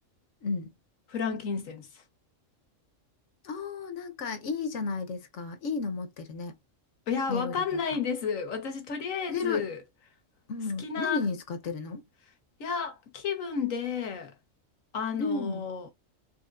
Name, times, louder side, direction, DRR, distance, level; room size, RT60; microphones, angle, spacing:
voice 1, 1.1-1.9 7.1-9.8 10.8-11.2 12.6-14.3 14.9-15.9, left 6 dB, 85° left, 1.5 m, -31 dB
voice 2, 3.4-6.6 7.3-7.5 9.3-9.7 10.5-12.0 15.2-15.7, left 4 dB, 70° left, 1.2 m, -33 dB
4.3 x 3.3 x 2.4 m
omnidirectional pair, 1.3 m